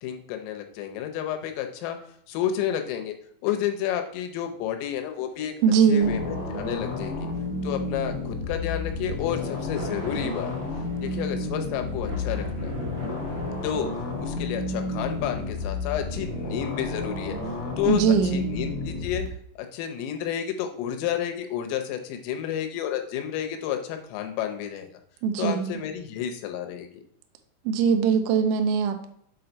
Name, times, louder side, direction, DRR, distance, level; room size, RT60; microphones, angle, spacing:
voice 1, 0.0-2.0 2.3-3.1 3.4-5.5 5.9-7.3 7.6-10.5 11.0-12.7 13.6-13.9 14.2-17.4 17.8-19.3 19.6-24.9 25.4-27.0, left 10 dB, 90° left, 6 dB, 3.5 m, -30 dB
sound 1, 5.3-5.4 9.2-17.5, equal, 65° right, 1.4 m, -42 dB
voice 2, 5.6-6.2 17.9-18.4 25.2-25.8 27.7-29.1, right 6 dB, 80° right, 6 dB, 2.9 m, -21 dB
sound 2, 6.0-19.3, left 2 dB, 60° left, 1.8 m, -31 dB
7.6 x 3.9 x 4.4 m, 0.67 s
omnidirectional pair, 5.7 m